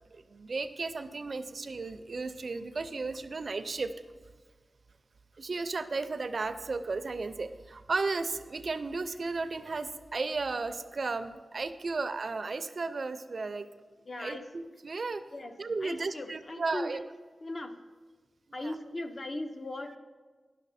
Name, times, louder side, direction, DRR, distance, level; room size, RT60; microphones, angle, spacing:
voice 1, 0.1-3.9 5.4-13.6 14.2-15.2 15.6-17.0 18.6-18.8, right 3 dB, 60° right, 10 dB, 0.4 m, -34 dB
voice 2, 14.1-14.5 15.3-17.0 17.4-17.8 18.5-20.0, left 2 dB, 45° left, 7 dB, 0.6 m, -38 dB
10.5 x 6.0 x 4.1 m, 1.4 s
wide cardioid pair, 80°, 0 cm